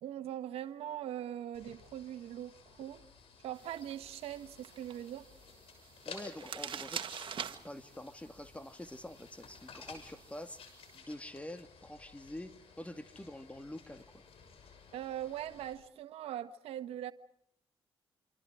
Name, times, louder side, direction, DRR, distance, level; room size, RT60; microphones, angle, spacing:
voice 1, 0.0-3.0 3.4-5.3 14.9-17.1, right 11 dB, 85° right, 1.3 m, -41 dB
sound 1, 1.5-15.7, left 5 dB, 75° left, 6.8 m, -55 dB
sound 2, 3.5-11.0, right 7 dB, 60° right, 1.9 m, -47 dB
voice 2, 6.1-7.0 7.6-10.6 10.9-12.5 12.8-14.2, left 1 dB, 15° left, 2.3 m, -46 dB
28.0 x 27.0 x 4.9 m
cardioid pair, 70°, 10 cm